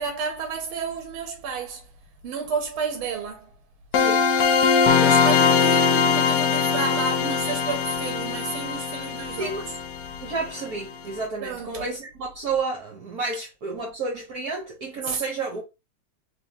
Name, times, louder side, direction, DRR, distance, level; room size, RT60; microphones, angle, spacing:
voice 1, 0.0-1.9 2.2-3.5 5.0-9.5 11.4-11.9 15.0-15.2, right 5 dB, 85° right, 1.5 m, -31 dB
sound 1, 3.9-10.6, left 6 dB, 80° left, 0.8 m, -21 dB
voice 2, 4.0-4.3 9.4-9.7 10.2-15.6, right 3 dB, 55° right, 1.2 m, -31 dB
3.5 x 3.5 x 2.6 m
omnidirectional pair, 2.3 m